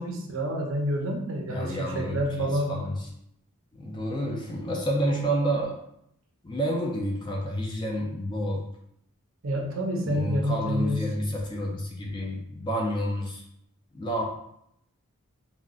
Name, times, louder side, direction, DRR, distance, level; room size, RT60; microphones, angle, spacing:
voice 1, 0.0-2.7 9.4-11.1, equal, 60° right, 1 dB, 0.6 m, -28 dB
voice 2, 1.5-3.0 3.7-5.8 6.4-8.6 10.0-13.4 13.9-14.2, equal, 20° left, -1 dB, 0.4 m, -29 dB
3.7 x 2.2 x 2.3 m, 0.75 s
head